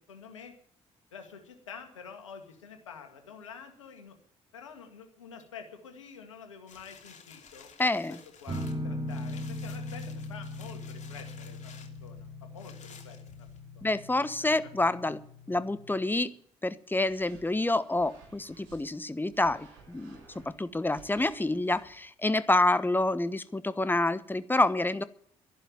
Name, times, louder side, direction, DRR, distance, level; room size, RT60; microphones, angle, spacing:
voice 1, 0.1-0.5 1.1-4.2 4.5-7.7 8.1-13.5 13.8-13.9 14.4-14.7, left 6 dB, 90° left, 5 dB, 1.9 m, -48 dB
sound 1, 6.7-13.8 14.3-14.4, left 6 dB, 50° left, 2.9 m, -54 dB
voice 2, 7.8-8.2 13.8-15.2 15.5-16.3 16.6-25.0, left 2 dB, 15° left, 15 dB, 1.1 m, -28 dB
sound 2, 8.5-16.0, left 1 dB, 35° right, 3.6 m, -39 dB
sound 3, 16.9-18.8 19.3-22.0, right 5 dB, 75° right, 6.9 m, -56 dB
12.5 x 11.5 x 9.0 m, 0.64 s
hypercardioid pair, 45°, 16 cm